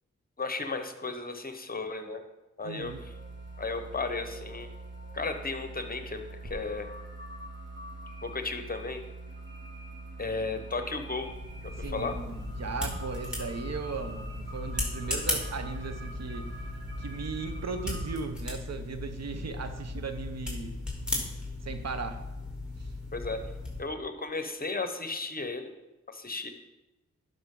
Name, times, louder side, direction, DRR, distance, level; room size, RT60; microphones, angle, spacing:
voice 1, 0.4-2.2 2.6-3.1 3.6-4.7 5.1-6.9 8.2-9.0 10.2-11.3 11.6-12.2 23.1-23.4 23.8-25.7 26.1-26.5, left 3 dB, 30° left, 7 dB, 1.0 m, -34 dB
voice 2, 2.6-3.0 11.7-16.5 17.0-20.8 21.6-22.2 22.8-22.9, right 5 dB, 60° right, 8 dB, 0.9 m, -37 dB
sound 1, 2.8-18.2, right 2 dB, 40° right, 1.8 m, -43 dB
sound 2, 11.1-23.8, left 2 dB, 5° right, 2.8 m, -37 dB
11.0 x 5.6 x 3.8 m, 1.0 s
cardioid pair, 60°, 29 cm